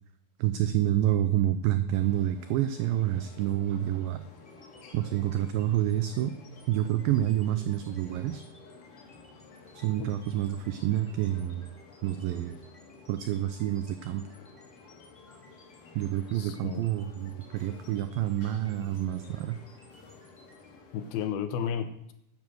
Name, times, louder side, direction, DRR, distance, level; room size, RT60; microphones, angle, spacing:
voice 1, 0.4-4.2 4.9-6.3 6.7-8.4 9.8-11.7 12.0-12.6 13.1-14.2 16.0-19.6, right 12 dB, 90° right, 10 dB, 2.0 m, -28 dB
sound 1, 1.9-21.3, left 4 dB, 60° left, 2.9 m, -53 dB
sound 2, 4.4-20.7, left 1 dB, 40° left, 0.5 m, -60 dB
voice 2, 16.3-16.9 20.9-22.1, left 8 dB, 80° left, 10 dB, 2.3 m, -33 dB
10.5 x 6.2 x 7.6 m, 0.79 s
omnidirectional pair, 4.7 m